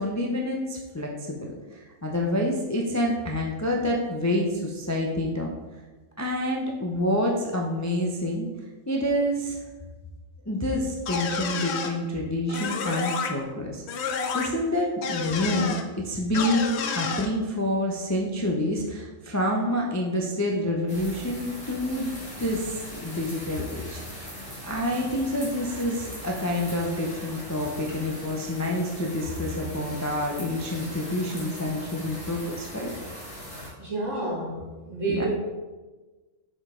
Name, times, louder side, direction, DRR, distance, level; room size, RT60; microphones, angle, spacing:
voice 1, 0.0-5.5 6.2-8.5 8.9-9.6 10.5-14.1 14.3-22.1 22.4-24.3 24.6-32.9 35.1-35.2, left 1 dB, 25° left, -1 dB, 0.4 m, -28 dB
sound 1, 11.1-11.9 12.5-13.3 13.9-14.5 15.0-15.8 16.3-17.3, left 5 dB, 60° left, 0.8 m, -29 dB
sound 2, 20.9-33.7, equal, 5° left, 1.9 m, -40 dB
voice 2, 33.8-35.3, right 2 dB, 70° right, -6 dB, 2.4 m, -30 dB
6.3 x 5.2 x 3.7 m, 1.2 s
omnidirectional pair, 1.3 m